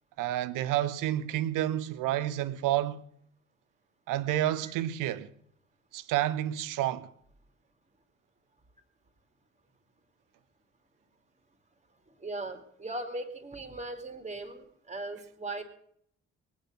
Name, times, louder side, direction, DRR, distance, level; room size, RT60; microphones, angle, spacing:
voice 1, 0.2-3.0 4.1-5.3 5.9-7.1, right 13 dB, 60° right, 1.0 m, -29 dB
voice 2, 12.2-15.6, right 2 dB, 20° right, 2.7 m, -38 dB
21.5 x 9.3 x 6.1 m
figure-of-eight pair, 45°, 37 cm